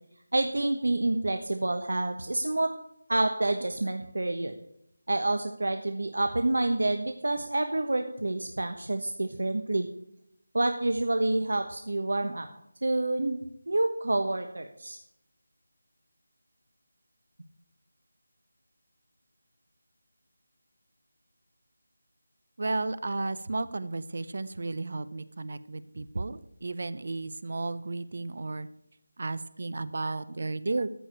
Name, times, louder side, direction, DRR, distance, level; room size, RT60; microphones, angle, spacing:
voice 1, 0.3-2.7 3.1-4.5 5.1-9.9 10.5-12.5 12.8-13.4 13.7-15.0, right 2 dB, 70° right, 6 dB, 1.2 m, -28 dB
voice 2, 22.6-28.7 29.2-30.9, right 3 dB, 35° right, 16 dB, 0.6 m, -33 dB
14.0 x 5.1 x 8.8 m, 0.76 s
figure-of-eight pair, 180°, 0 cm